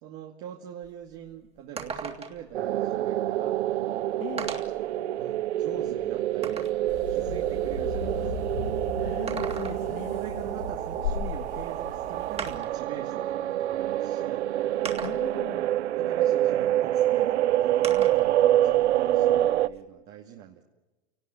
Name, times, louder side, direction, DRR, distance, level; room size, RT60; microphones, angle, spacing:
voice 1, 0.0-3.6 5.2-6.6 7.1-8.3 10.1-14.4 15.9-20.6, right 10 dB, 45° right, 2 dB, 2.3 m, -42 dB
sound 1, 0.8-0.9 1.3-1.4 1.8-2.5 3.6-3.7 4.4-4.9 5.4-6.8 9.1-10.0 11.5-11.6 12.4-12.8 13.8-13.9 14.9-15.5 17.8-18.3 18.7-19.8, right 5 dB, 20° right, 3.0 m, -37 dB
sound 2, 2.5-19.7, right 13 dB, 85° right, 0.8 m, -26 dB
voice 2, 4.2-4.5 9.0-10.2 15.0-15.7, left 14 dB, 65° left, 8 dB, 2.2 m, -40 dB
sound 3, 6.9-12.6, left 5 dB, 85° left, 6.2 m, -36 dB
28.5 x 18.5 x 9.2 m, 1.2 s
supercardioid pair, 140°, 33 cm